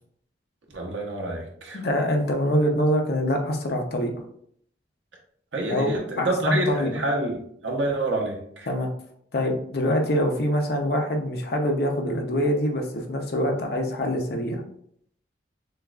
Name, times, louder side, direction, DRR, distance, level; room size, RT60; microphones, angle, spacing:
voice 1, 0.7-1.8 5.5-8.7, right 2 dB, 80° right, 0 dB, 1.0 m, -27 dB
voice 2, 1.7-4.1 5.7-5.9 6.2-6.9 8.7-8.9 9.3-14.6, equal, 55° left, 2 dB, 0.7 m, -24 dB
6.3 x 2.4 x 2.4 m, 0.67 s
head